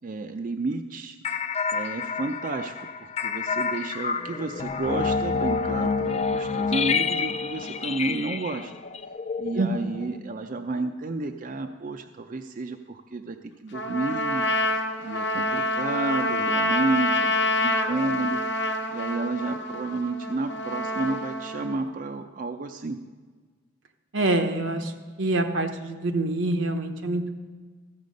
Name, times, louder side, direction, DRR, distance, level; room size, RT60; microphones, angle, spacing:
voice 1, 0.0-1.2 1.7-8.7 9.4-14.5 15.0-17.3 17.6-18.4 18.9-23.0, right 3 dB, 45° right, 6 dB, 0.5 m, -31 dB
sound 1, 1.2-10.2, left 5 dB, 30° left, 0.4 m, -28 dB
Trumpet, 13.7-21.8, left 1 dB, 60° left, 1.0 m, -27 dB
voice 2, 24.1-24.9 25.2-27.3, right 2 dB, 80° right, 5 dB, 1.0 m, -25 dB
14.0 x 7.3 x 5.2 m, 1.5 s
head